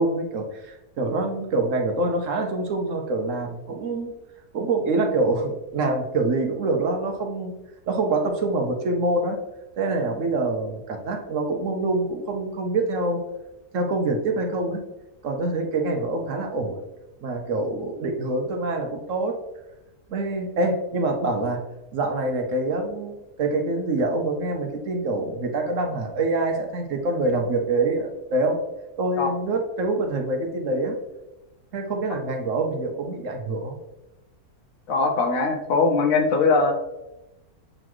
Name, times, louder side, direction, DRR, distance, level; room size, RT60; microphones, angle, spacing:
voice 1, 0.0-4.1 4.5-7.5 7.9-9.4 9.8-13.2 13.7-14.8 15.2-16.8 17.2-19.4 20.1-21.6 21.9-28.6 29.0-31.0 31.7-33.8, right 2 dB, 60° right, 4 dB, 1.0 m, -25 dB
voice 2, 34.9-36.7, left 4 dB, 65° left, 4 dB, 1.2 m, -21 dB
7.6 x 4.0 x 3.0 m, 0.97 s
omnidirectional pair, 1.6 m